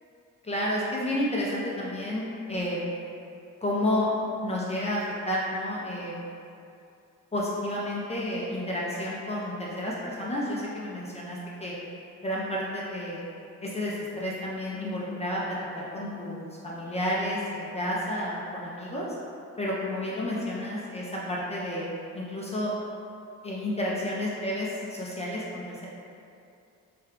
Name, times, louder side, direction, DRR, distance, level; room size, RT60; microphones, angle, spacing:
voice 1, 0.4-2.9 3.6-4.1 4.4-6.2 7.3-11.8 12.2-13.2 13.6-19.1 19.6-21.9 22.1-22.7 23.4-25.9, left 1 dB, 20° left, -6 dB, 0.5 m, -31 dB
3.3 x 2.2 x 3.6 m, 2.6 s
cardioid pair, 90°, 30 cm